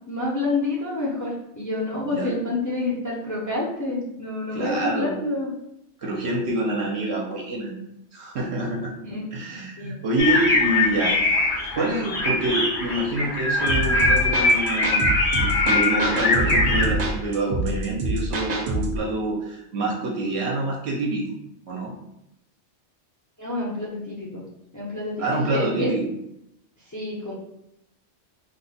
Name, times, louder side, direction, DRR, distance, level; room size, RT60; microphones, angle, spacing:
voice 1, 0.1-5.5 9.1-9.3 9.8-10.0 23.4-24.4 24.7-25.9 26.9-27.3, left 2 dB, 20° left, -5 dB, 0.5 m, -28 dB
voice 2, 4.5-5.1 6.0-7.7 8.1-8.9 9.3-11.1 11.7-21.3 21.7-21.9 25.2-26.1, right 2 dB, 70° right, -1 dB, 0.9 m, -26 dB
sound 1, 10.2-16.9, left 2 dB, 70° left, 1.0 m, -22 dB
sound 2, 13.7-19.0, right 1 dB, 50° right, 0.6 m, -26 dB
3.2 x 2.1 x 4.1 m, 0.83 s
omnidirectional pair, 1.2 m